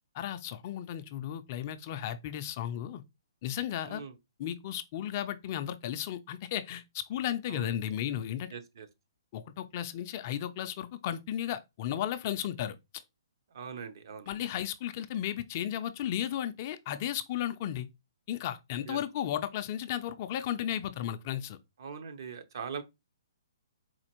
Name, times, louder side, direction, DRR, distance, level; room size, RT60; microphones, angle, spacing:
voice 1, 0.1-3.0 3.4-4.0 4.4-8.5 9.3-12.7 14.3-17.9 18.3-21.6, left 11 dB, 35° left, 0.3 m, -34 dB
voice 2, 3.8-4.1 7.5-7.7 8.5-8.9 13.5-14.3 18.9-19.0 21.8-22.8, right 6 dB, 55° right, 0.6 m, -41 dB
4.2 x 2.5 x 2.9 m
hypercardioid pair, 155°, 3 cm